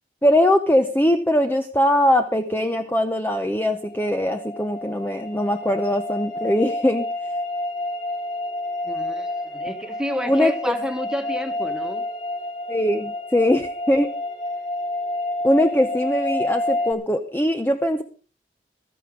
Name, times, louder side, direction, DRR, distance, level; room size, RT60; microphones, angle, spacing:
voice 1, 0.2-7.1 10.3-10.7 12.7-14.1 15.4-18.0, left 1 dB, 10° left, 6 dB, 0.7 m, -21 dB
sound 1, 3.8-16.9, left 1 dB, 50° left, 2.6 m, -29 dB
voice 2, 8.8-9.3 9.5-12.0, equal, 5° right, 6 dB, 1.5 m, -29 dB
16.5 x 14.0 x 3.8 m, 0.39 s
head